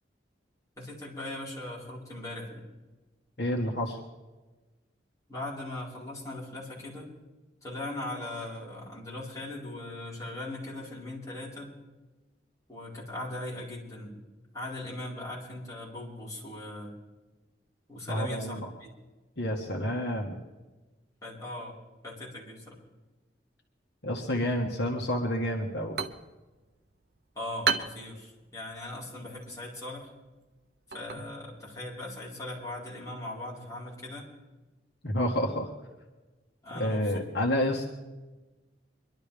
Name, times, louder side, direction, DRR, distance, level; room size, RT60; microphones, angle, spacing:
voice 1, 0.8-2.6 5.3-7.1 7.6-11.8 12.7-14.2 14.5-17.0 17.9-18.9 21.2-21.8 22.0-22.8 27.3-30.1 30.9-34.3 36.6-37.2, left 1 dB, 20° left, -6 dB, 4.6 m, -39 dB
voice 2, 3.4-4.0 18.1-18.7 19.4-20.4 24.0-26.0 31.2-31.3 35.0-35.7 36.7-37.9, left 1 dB, 65° left, 1 dB, 1.6 m, -29 dB
sound 1, 25.6-33.1, right 5 dB, 60° right, 0.9 m, -38 dB
24.0 x 12.0 x 3.5 m, 1.2 s
head